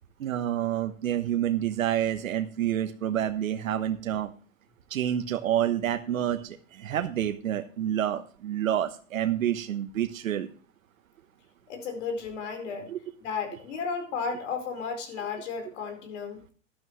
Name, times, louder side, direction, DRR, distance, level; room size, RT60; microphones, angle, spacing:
voice 1, 0.2-4.3 4.9-10.5 12.9-13.0, right 11 dB, 85° right, 7 dB, 1.2 m, -28 dB
voice 2, 11.7-12.9 13.2-16.4, left 5 dB, 65° left, 5 dB, 4.5 m, -33 dB
12.5 x 12.0 x 3.2 m, 0.40 s
hypercardioid pair, 135°, 39 cm